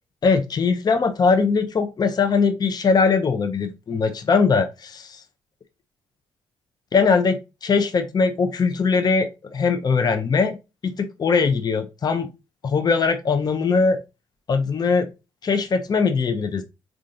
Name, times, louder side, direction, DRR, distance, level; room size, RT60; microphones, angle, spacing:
voice 1, 0.2-5.2 6.9-10.6 10.8-12.3 12.6-14.0 14.5-15.1 15.4-16.6, left 4 dB, 40° left, 0.5 m, -21 dB
3.7 x 2.4 x 2.5 m
supercardioid pair, 55°, 11 cm